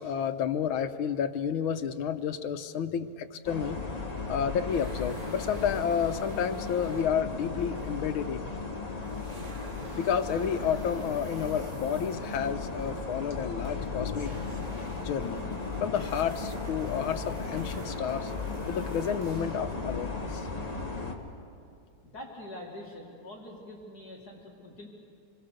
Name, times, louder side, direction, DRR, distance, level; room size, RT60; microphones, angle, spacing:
voice 1, 0.0-3.8 4.3-8.5 9.9-14.3 15.0-15.4 15.8-18.3 18.6-20.5, left 8 dB, 85° left, 9 dB, 1.7 m, -30 dB
sound 1, 3.4-21.1, left 4 dB, 20° left, 1.5 m, -36 dB
sound 2, 4.6-8.7 9.0-19.8, right 3 dB, 45° right, 2.2 m, -51 dB
voice 2, 22.0-24.9, left 1 dB, 50° left, -2 dB, 2.7 m, -44 dB
26.5 x 21.5 x 6.6 m, 2.4 s
omnidirectional pair, 2.2 m